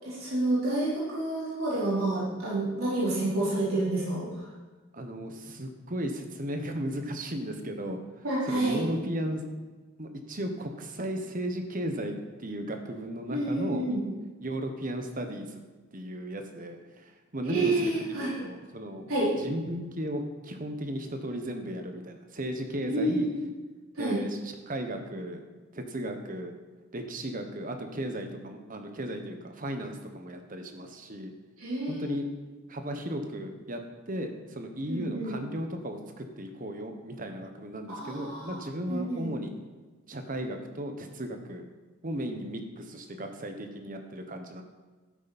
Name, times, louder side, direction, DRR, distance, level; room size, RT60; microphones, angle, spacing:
voice 1, 0.0-4.4 8.2-8.8 13.3-14.0 17.5-18.3 19.1-19.3 22.9-23.4 23.9-24.2 31.6-32.2 34.9-35.3 37.9-38.6 38.9-39.3, right 2 dB, 90° right, -8 dB, 4.0 m, -29 dB
voice 2, 4.9-8.0 8.4-9.4 10.0-13.8 14.4-15.6 15.9-19.1 19.4-23.3 24.0-25.4 25.7-26.5 26.9-31.3 31.9-32.2 32.7-33.8 34.1-39.5 40.1-41.7 42.0-44.6, equal, 40° right, 5 dB, 1.2 m, -35 dB
12.0 x 9.0 x 4.2 m, 1.3 s
head